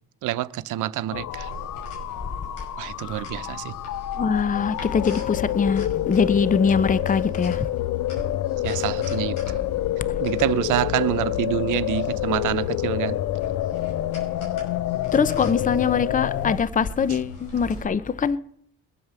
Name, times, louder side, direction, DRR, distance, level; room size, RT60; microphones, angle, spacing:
voice 1, 0.2-1.5 2.8-3.8 8.6-9.4 10.2-13.2, right 14 dB, 85° right, 0.7 m, -26 dB
sound 1, 1.1-16.6, left 14 dB, 70° left, 0.5 m, -28 dB
sound 2, 1.3-17.8, equal, 90° left, 5.8 m, -40 dB
voice 2, 4.2-7.7 15.1-18.4, left 6 dB, 25° left, 0.7 m, -23 dB
22.0 x 7.9 x 6.9 m
cardioid pair, 90°, 30 cm